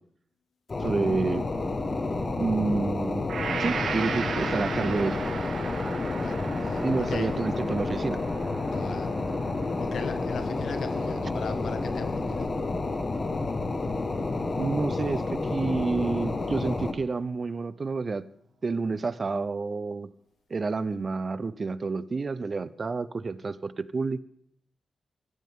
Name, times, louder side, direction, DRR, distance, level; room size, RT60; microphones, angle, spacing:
sound 1, 0.7-16.9, left 3 dB, 35° left, 1.4 m, -30 dB
voice 1, 0.8-1.4 2.4-3.3 3.6-5.2 6.8-8.2 14.6-18.3 18.6-20.1 20.5-24.2, right 4 dB, 40° right, 16 dB, 0.6 m, -29 dB
Gong, 3.3-11.3, right 6 dB, 75° right, 1.5 m, -37 dB
voice 2, 6.2-7.3 8.7-9.5 9.8-12.5, left 5 dB, 85° left, 8 dB, 1.7 m, -38 dB
21.5 x 15.0 x 3.7 m, 0.66 s
wide cardioid pair, 120°, 0 cm